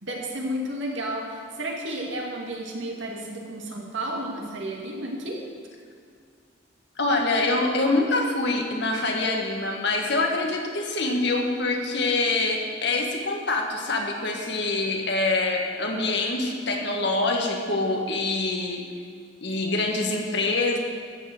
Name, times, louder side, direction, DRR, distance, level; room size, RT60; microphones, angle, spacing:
voice 1, 0.0-5.4, right 1 dB, 65° right, -1 dB, 2.4 m, -32 dB
voice 2, 7.0-18.8 19.4-20.8, left 2 dB, 60° left, 2 dB, 1.7 m, -25 dB
13.0 x 7.5 x 7.9 m, 2.2 s
head